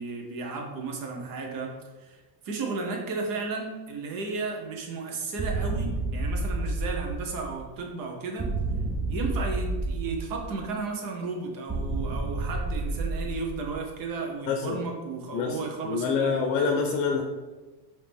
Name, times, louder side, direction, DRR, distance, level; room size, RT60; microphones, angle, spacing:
voice 1, 0.0-1.7 2.0-8.5 9.1-16.4, right 4 dB, 45° right, 2 dB, 1.0 m, -34 dB
sound 1, 5.4-7.7 8.4-10.7 11.7-14.0, right 2 dB, 10° right, 0.5 m, -30 dB
voice 2, 14.5-14.8 15.3-15.6 15.8-17.2, left 5 dB, 65° left, 2 dB, 0.7 m, -26 dB
4.9 x 2.9 x 3.5 m, 1.2 s
supercardioid pair, 120°, 48 cm